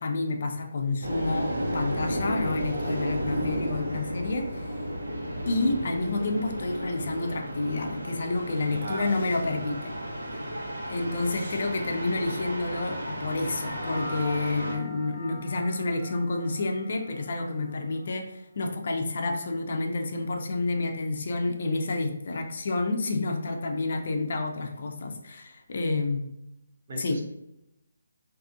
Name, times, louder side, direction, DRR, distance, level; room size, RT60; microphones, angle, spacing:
voice 1, 0.0-4.8 5.5-9.9 10.9-26.2 27.0-27.2, left 2 dB, 55° left, 3 dB, 0.5 m, -29 dB
sound 1, 1.0-14.8, equal, 85° right, 1.1 m, -33 dB
voice 2, 8.7-9.2 10.4-10.5 26.9-27.2, right 2 dB, 50° right, 0 dB, 0.8 m, -37 dB
sound 2, 13.4-18.1, left 1 dB, 10° left, 1.0 m, -44 dB
2.6 x 2.5 x 3.7 m, 0.86 s
figure-of-eight pair, 155°, 0 cm